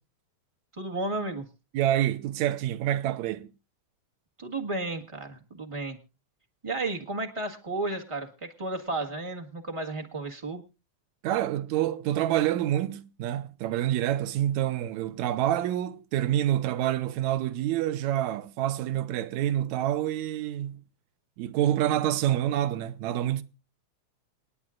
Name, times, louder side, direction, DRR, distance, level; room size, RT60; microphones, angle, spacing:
voice 1, 0.7-1.4 4.4-6.0 6.6-10.6, right 2 dB, 55° right, 0.3 m, -33 dB
voice 2, 1.7-3.5 11.2-20.8 21.4-23.4, right 12 dB, 80° right, 2.1 m, -27 dB
28.0 x 9.6 x 2.5 m
omnidirectional pair, 3.4 m